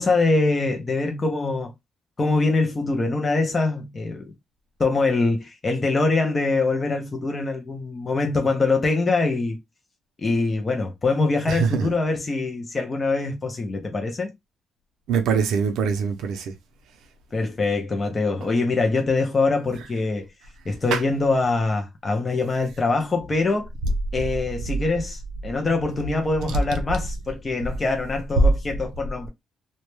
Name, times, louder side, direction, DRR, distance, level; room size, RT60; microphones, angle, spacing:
voice 1, 0.0-1.7 2.2-4.3 4.8-9.6 10.2-14.3 17.3-20.3 20.7-23.7 24.1-29.3, left 3 dB, 20° left, 0.4 m, -23 dB
voice 2, 11.5-11.9 15.1-16.5 20.9-21.0 26.4-26.8, right 5 dB, 85° right, 0.4 m, -23 dB
2.1 x 2.0 x 3.0 m
cardioid pair, 160°, 0 cm